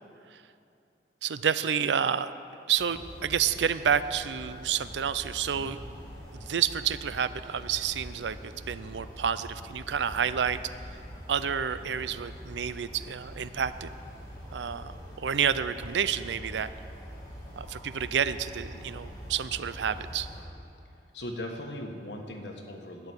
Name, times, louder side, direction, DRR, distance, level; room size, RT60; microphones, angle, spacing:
voice 1, 1.2-2.3 2.7-5.8 6.3-10.6 11.3-13.9 14.5-16.7 17.6-20.3, right 8 dB, 90° right, 14 dB, 0.5 m, -29 dB
sound 1, 2.8-20.4, equal, 20° left, 2.5 m, -44 dB
voice 2, 21.1-23.1, left 1 dB, 80° left, 3 dB, 1.4 m, -39 dB
12.0 x 6.8 x 9.7 m, 2.6 s
head